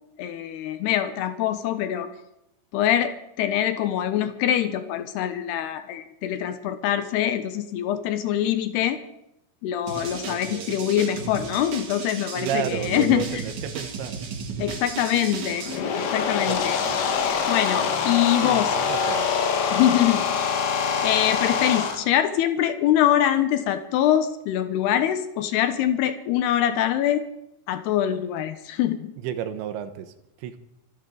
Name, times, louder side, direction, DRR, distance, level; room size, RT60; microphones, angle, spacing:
voice 1, 0.2-2.1 2.7-9.0 9.6-13.4 14.6-15.7 16.0-16.7 17.5-18.7 19.7-20.6 21.0-27.3 27.7-29.1, left 11 dB, 85° left, 10 dB, 2.4 m, -24 dB
sound 1, 9.9-15.8, right 5 dB, 50° right, 2.8 m, -34 dB
voice 2, 10.3-10.8 12.4-14.2 16.5-16.6 16.8-17.0 18.4-19.3 29.2-30.6, right 10 dB, 75° right, 9 dB, 3.0 m, -32 dB
sound 2, 15.5-22.0, left 6 dB, 65° left, 3.6 m, -24 dB
25.5 x 12.5 x 3.9 m, 0.84 s
omnidirectional pair, 5.8 m